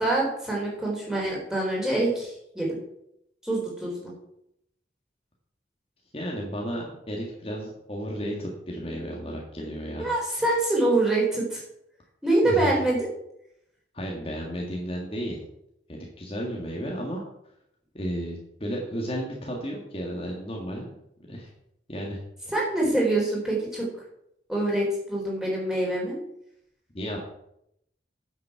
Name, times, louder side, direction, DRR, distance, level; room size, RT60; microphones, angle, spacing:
voice 1, 0.0-2.8 3.4-4.1 10.0-11.6 12.2-13.1 22.5-23.9 24.5-26.2, right 2 dB, 5° right, -4 dB, 3.7 m, -25 dB
voice 2, 6.1-10.1 12.4-12.7 13.9-15.4 15.9-17.2 17.9-21.0 21.3-21.5 21.9-22.2 26.9-27.2, equal, 30° left, -1 dB, 1.7 m, -33 dB
9.3 x 7.4 x 7.0 m, 0.78 s
head